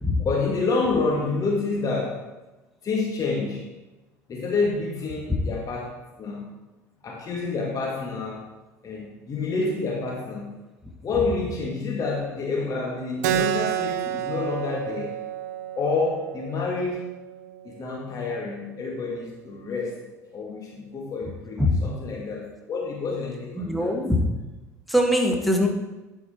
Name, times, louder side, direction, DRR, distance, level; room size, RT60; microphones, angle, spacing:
voice 1, 0.2-2.3 2.8-3.6 4.3-6.4 7.0-8.4 8.8-10.5 11.0-15.1 15.8-17.1 17.7-20.0 20.3-24.0, left 3 dB, 40° left, -1 dB, 1.7 m, -28 dB
Keyboard (musical), 13.2-18.3, right 10 dB, 70° right, 0.5 m, -30 dB
voice 2, 23.6-24.2 24.9-25.7, left 1 dB, ahead, 2 dB, 1.6 m, -22 dB
11.0 x 4.6 x 4.4 m, 1.1 s
hypercardioid pair, 65°, 9 cm